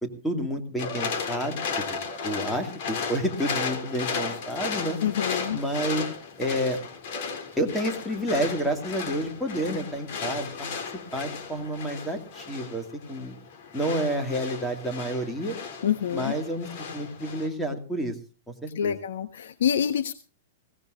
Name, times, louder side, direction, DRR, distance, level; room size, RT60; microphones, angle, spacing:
voice 1, 0.0-5.0 5.5-6.0 6.4-6.8 7.6-10.7 11.1-13.4 13.7-15.6 16.1-16.7 16.9-18.2 18.5-19.0, right 1 dB, 5° left, 5 dB, 2.2 m, -30 dB
sound 1, 0.8-17.5, left 5 dB, 45° left, 3.1 m, -35 dB
voice 2, 5.0-5.6 15.8-16.3 18.7-20.1, left 9 dB, 85° left, 10 dB, 1.2 m, -26 dB
20.5 x 18.0 x 2.5 m, 0.38 s
supercardioid pair, 170°, 0 cm